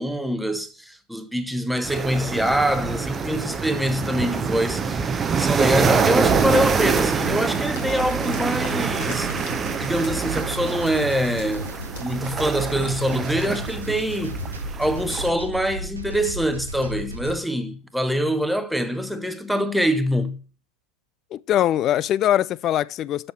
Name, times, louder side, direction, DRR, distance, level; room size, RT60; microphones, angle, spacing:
voice 1, 0.0-9.3 9.8-11.7 12.0-14.4 14.8-20.4, equal, ahead, 1.0 m, -24 dB
sound 1, 1.8-15.3, right 5 dB, 20° right, 0.8 m, -25 dB
sound 2, 5.8-17.4, right 2 dB, 75° right, 1.0 m, -34 dB
sound 3, 7.7-13.5, left 6 dB, 50° left, 2.0 m, -44 dB
voice 2, 21.3-23.3, left 12 dB, 30° left, 0.4 m, -22 dB
7.8 x 6.4 x 6.9 m
figure-of-eight pair, 90°, 0 cm